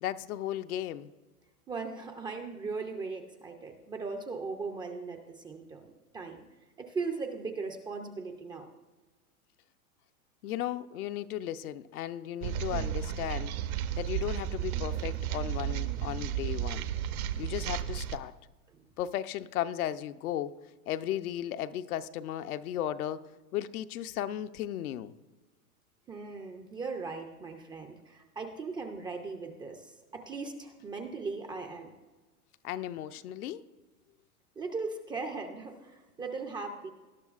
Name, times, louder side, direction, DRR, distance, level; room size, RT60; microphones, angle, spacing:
voice 1, 0.0-1.1 10.4-13.6 14.0-16.9 17.4-18.3 19.0-20.6 20.9-23.2 23.5-25.1 32.6-33.6, left 12 dB, 70° left, 0.7 m, -35 dB
voice 2, 1.7-6.4 6.8-8.7 17.6-17.7 18.7-18.9 26.1-31.9 34.6-36.9, right 4 dB, 10° right, 0.4 m, -38 dB
sound 1, 12.4-18.2, right 10 dB, 65° right, 0.9 m, -33 dB
19.5 x 12.0 x 2.4 m
hypercardioid pair, 120°, 45 cm